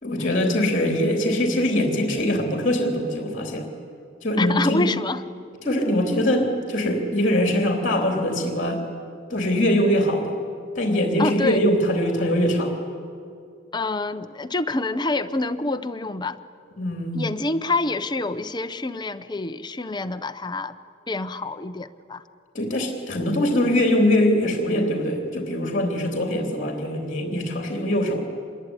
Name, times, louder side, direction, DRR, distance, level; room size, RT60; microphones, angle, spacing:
voice 1, 0.0-3.7 4.2-4.9 5.6-8.8 9.3-10.3 10.7-12.7 16.8-17.3 22.5-28.2, left 1 dB, 40° left, 4 dB, 3.4 m, -22 dB
voice 2, 4.4-5.2 11.2-11.7 13.7-16.4 17.1-20.7 21.1-22.2, left 2 dB, 20° left, 9 dB, 0.9 m, -27 dB
26.0 x 21.0 x 9.9 m, 2.4 s
head